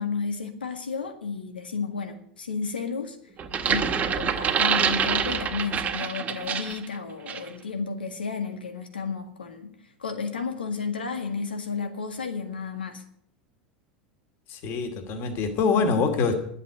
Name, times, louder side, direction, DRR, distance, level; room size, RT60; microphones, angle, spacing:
voice 1, 0.0-3.2 3.7-9.7 10.0-13.0, left 5 dB, 90° left, 1.9 m, -32 dB
sound 1, 3.4-6.8 7.3-7.5, right 7 dB, 30° right, 1.6 m, -26 dB
voice 2, 14.5-16.3, left 5 dB, 50° left, 2.4 m, -24 dB
11.0 x 8.1 x 9.0 m
hypercardioid pair, 85°, 5 cm